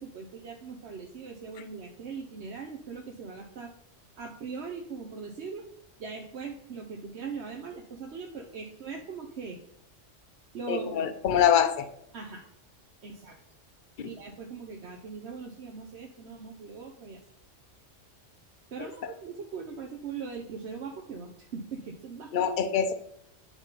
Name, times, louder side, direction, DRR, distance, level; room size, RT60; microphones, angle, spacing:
voice 1, 0.0-3.7 4.2-5.7 6.0-9.6 10.5-11.1 12.1-12.5 13.0-13.4 14.0-17.2 18.7-22.3, right 5 dB, 65° right, 2 dB, 1.1 m, -40 dB
voice 2, 10.7-11.9 14.0-14.1 18.8-18.9 22.3-22.9, left 8 dB, 50° left, 10 dB, 0.8 m, -25 dB
8.7 x 5.4 x 4.0 m, 0.73 s
omnidirectional pair, 1.3 m